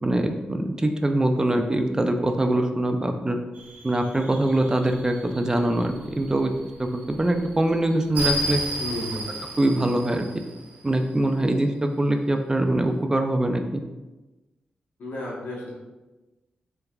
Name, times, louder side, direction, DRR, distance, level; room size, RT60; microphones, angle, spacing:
voice 1, 0.0-3.4 3.8-6.5 6.8-8.6 9.6-10.3 10.8-13.8, right 1 dB, 20° right, 5 dB, 0.3 m, -23 dB
sound 1, 3.5-11.0, right 1 dB, 50° right, 0.8 m, -34 dB
voice 2, 8.8-9.4 15.0-15.7, left 1 dB, 80° left, -5 dB, 1.0 m, -33 dB
3.3 x 3.3 x 2.3 m, 1.1 s
cardioid pair, 65°, 3 cm